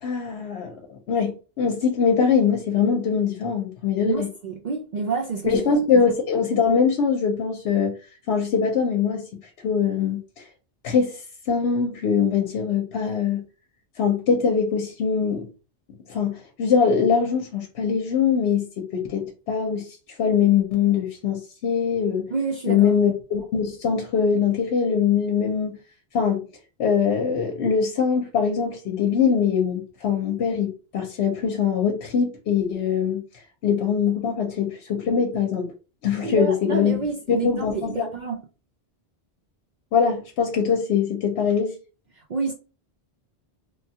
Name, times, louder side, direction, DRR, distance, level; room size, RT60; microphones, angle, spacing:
voice 1, 0.0-4.3 5.4-8.0 8.3-10.5 10.8-11.2 11.5-13.4 14.0-15.5 16.1-22.3 22.7-25.8 26.1-26.4 26.8-33.2 33.6-35.7 36.0-37.0 37.3-38.1 39.9-41.8, left 6 dB, 80° left, 0.9 m, -22 dB
voice 2, 4.1-5.6 22.3-22.9 36.2-38.4 42.3-42.5, right 4 dB, 55° right, 0.5 m, -28 dB
3.1 x 2.3 x 2.7 m
omnidirectional pair, 1.1 m